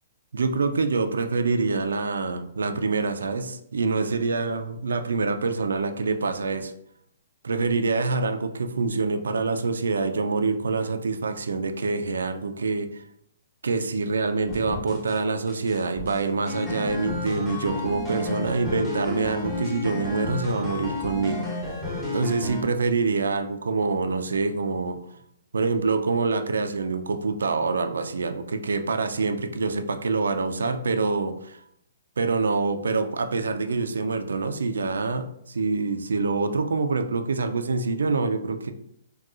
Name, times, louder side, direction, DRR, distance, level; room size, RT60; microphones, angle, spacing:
voice 1, 0.3-6.7 7.4-13.0 13.6-21.5 22.1-25.0 25.5-31.6 32.2-38.7, right 4 dB, 80° right, 8 dB, 0.3 m, -26 dB
sound 1, 14.5-15.2 15.5-22.6, left 2 dB, 15° left, 1.0 m, -32 dB
3.8 x 2.3 x 2.4 m, 0.71 s
hypercardioid pair, 130°, 0 cm